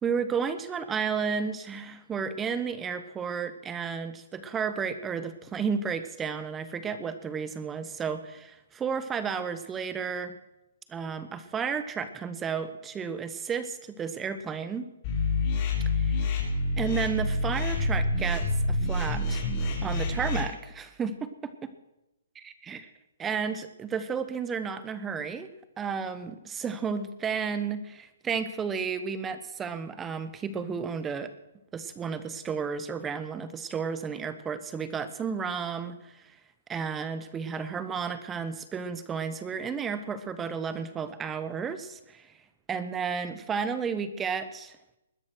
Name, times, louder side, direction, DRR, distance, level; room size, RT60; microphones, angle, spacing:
voice 1, 0.0-10.3 10.9-14.8 16.0-16.3 16.8-21.3 22.7-22.8 23.2-25.5 25.8-31.3 31.7-36.2 36.7-42.3 42.7-44.8, right 6 dB, 10° right, 12 dB, 1.0 m, -32 dB
sound 1, 15.0-20.4, left 2 dB, 30° left, 4.9 m, -27 dB
21.0 x 9.8 x 6.3 m, 0.92 s
hypercardioid pair, 160°, 0 cm